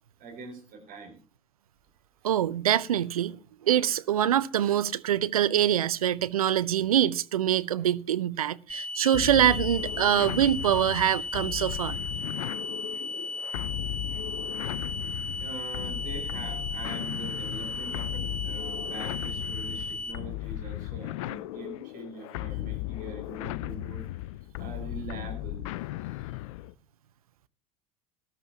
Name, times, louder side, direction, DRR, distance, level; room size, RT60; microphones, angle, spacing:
voice 1, 0.2-1.2 2.2-2.3 15.1-24.0 24.6-25.7, right 3 dB, 50° right, 5.5 m, -43 dB
voice 2, 2.2-12.0, right 11 dB, 85° right, 0.5 m, -25 dB
sound 1, 8.7-20.1, left 2 dB, 5° left, 2.6 m, -35 dB
sound 2, 9.1-26.7, left 17 dB, 65° left, 0.5 m, -36 dB
18.0 x 12.5 x 2.9 m
hypercardioid pair, 75°, 18 cm